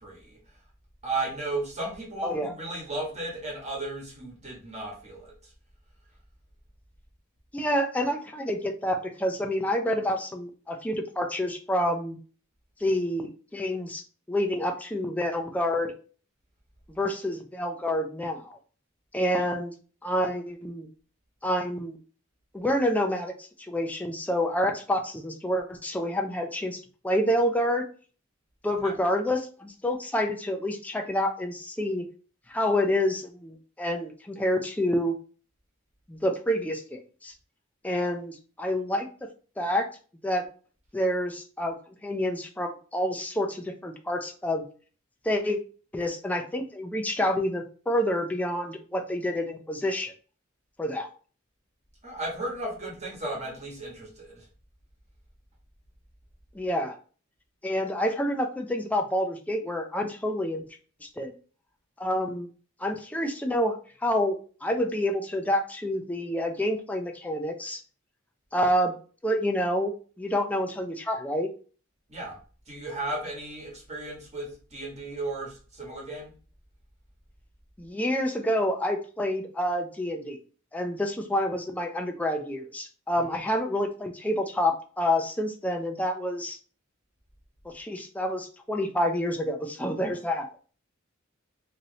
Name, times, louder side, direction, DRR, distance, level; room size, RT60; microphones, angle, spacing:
voice 1, 0.0-0.4 1.0-5.3 28.8-28.9 52.0-54.4 72.1-72.4 72.7-76.3 83.2-83.3, right 2 dB, 35° right, 1.2 m, -35 dB
voice 2, 2.2-2.5 7.5-12.2 12.8-14.0 14.3-15.9 16.9-18.6 19.1-19.7 20.0-20.9 21.4-22.0 22.5-27.8 28.6-32.1 32.5-35.2 36.1-37.3 37.8-39.3 39.6-39.9 40.2-40.4 40.9-44.6 45.2-45.6 45.9-50.1 50.8-51.1 56.5-57.0 57.6-60.6 61.0-61.3 62.0-62.5 62.8-67.8 68.5-68.9 69.2-71.5 77.8-80.4 80.7-86.6 87.7-90.5, equal, 10° left, 0.4 m, -28 dB
3.0 x 2.7 x 2.7 m
head